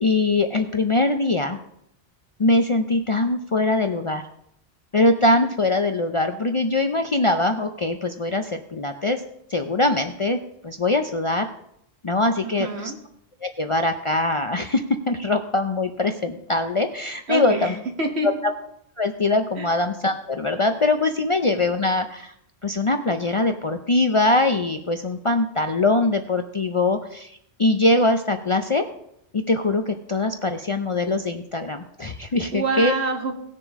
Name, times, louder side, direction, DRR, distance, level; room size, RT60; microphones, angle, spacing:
voice 1, 0.0-1.6 2.4-4.2 4.9-9.2 9.5-11.5 12.0-12.7 13.4-17.7 19.0-22.3 22.6-27.3 27.6-28.8 29.3-32.9, left 2 dB, 40° left, 6 dB, 0.5 m, -22 dB
voice 2, 12.4-13.0 17.3-18.3 19.6-19.7 32.5-33.3, right 3 dB, 75° right, 3 dB, 1.7 m, -26 dB
17.5 x 6.7 x 3.6 m, 0.75 s
omnidirectional pair, 1.1 m